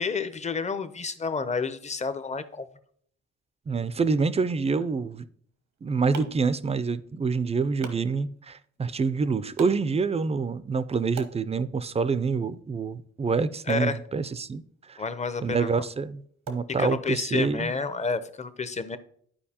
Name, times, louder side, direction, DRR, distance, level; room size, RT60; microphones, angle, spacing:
voice 1, 0.0-2.7 13.7-14.0 15.0-15.8 16.8-19.0, left 4 dB, 25° left, 0.6 m, -30 dB
voice 2, 3.7-5.2 5.8-14.6 14.9-15.0 15.4-16.2 16.5-17.7, right 5 dB, 20° right, 0.4 m, -27 dB
sound 1, 5.5-17.4, right 4 dB, 85° right, 1.1 m, -48 dB
11.5 x 4.6 x 2.8 m
cardioid pair, 85°, 30 cm